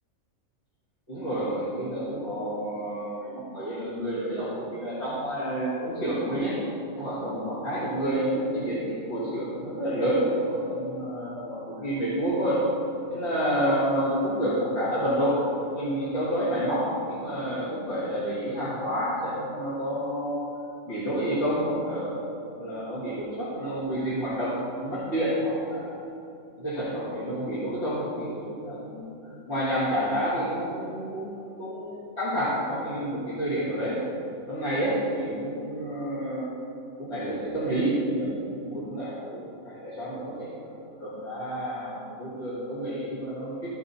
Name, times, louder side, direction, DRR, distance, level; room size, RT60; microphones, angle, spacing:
voice 1, 1.1-6.6 6.9-12.6 13.1-15.4 15.7-20.4 20.9-22.3 22.6-26.0 26.6-34.0 34.5-36.5 37.0-40.7 41.0-43.7, equal, 50° left, -11 dB, 2.4 m, -29 dB
14.0 x 5.5 x 4.2 m, 2.7 s
omnidirectional pair, 1.5 m